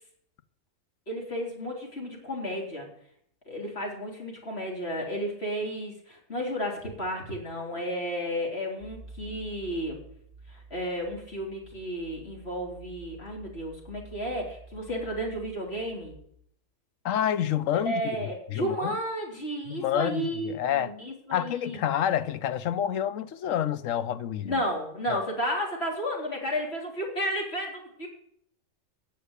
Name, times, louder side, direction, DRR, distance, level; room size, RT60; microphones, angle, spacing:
voice 1, 1.1-2.9 3.5-10.0 10.5-16.2 17.9-21.8 24.4-28.1, equal, 50° left, 4.0 m, -32 dB
sound 1, 8.8-16.3, right 3 dB, 35° right, 3.3 m, -49 dB
voice 2, 17.0-18.0 18.5-18.9 19.7-20.9 21.3-24.6 25.1-25.2, left 10 dB, 80° left, 1.1 m, -28 dB
18.0 x 6.6 x 8.2 m
omnidirectional pair, 1.4 m